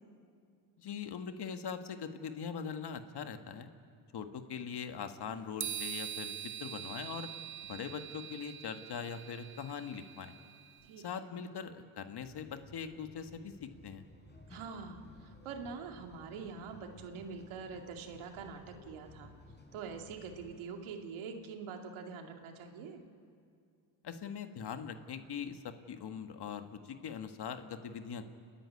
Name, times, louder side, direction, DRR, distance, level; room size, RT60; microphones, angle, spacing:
voice 1, 0.8-3.7 4.1-7.3 7.6-10.3 11.0-14.1 24.0-28.3, left 6 dB, 50° left, 8 dB, 1.7 m, -42 dB
sound 1, 5.6-10.9, right 10 dB, 25° right, 0.5 m, -44 dB
voice 2, 10.8-11.3 14.5-19.3 19.7-23.0, right 5 dB, 75° right, 4 dB, 2.3 m, -45 dB
sound 2, 12.2-20.6, left 2 dB, 20° left, 4.5 m, -57 dB
30.0 x 10.5 x 9.7 m, 2.3 s
supercardioid pair, 70°, 49 cm